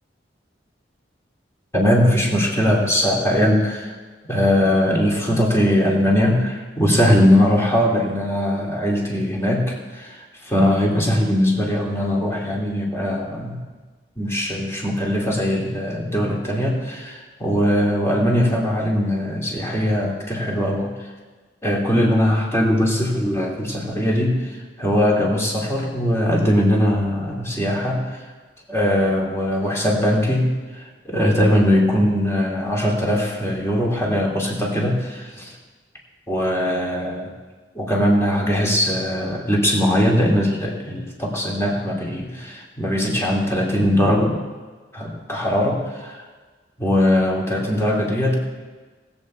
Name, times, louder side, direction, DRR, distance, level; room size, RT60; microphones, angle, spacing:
voice 1, 1.7-3.9 4.3-13.6 14.2-20.9 21.6-28.2 28.7-30.5 31.0-35.5 36.3-37.3 37.7-44.4 44.9-46.2 46.8-48.3, equal, 15° left, -2 dB, 2.3 m, -20 dB
19.0 x 7.8 x 4.3 m, 1.3 s
head